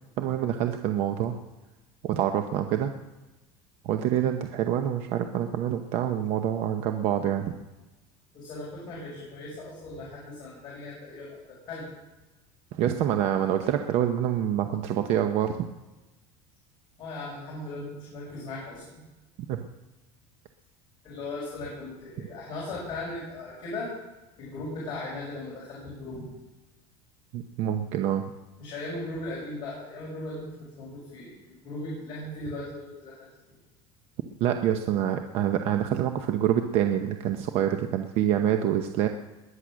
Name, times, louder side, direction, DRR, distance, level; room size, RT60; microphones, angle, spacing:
voice 1, 0.2-1.4 2.0-2.9 3.8-7.5 12.7-15.6 19.5-19.6 27.3-28.2 34.4-39.1, right 10 dB, 50° right, 6 dB, 0.9 m, -26 dB
voice 2, 8.3-11.9 17.0-19.0 21.0-23.9 24.4-26.3 28.6-33.2 33.5-33.6, left 2 dB, 35° left, -6 dB, 5.9 m, -38 dB
20.5 x 9.8 x 6.3 m, 1.1 s
cardioid pair, 165°, 13 cm